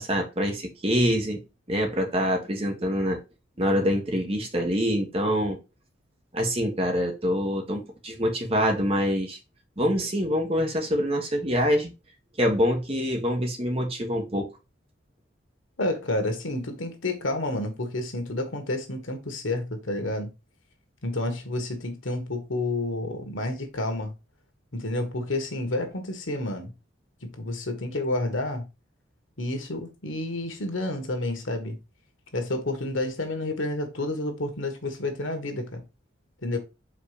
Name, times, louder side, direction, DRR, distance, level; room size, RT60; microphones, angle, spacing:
voice 1, 0.0-1.4 1.7-3.2 3.6-5.6 6.3-9.4 9.8-11.9 12.4-14.5, equal, 30° right, 1.4 m, -25 dB
voice 2, 15.8-20.3 21.0-24.1 24.7-26.7 27.3-28.6 29.4-31.8 32.3-35.8 36.4-36.6, left 2 dB, 80° left, 1.5 m, -30 dB
5.1 x 4.0 x 5.0 m
head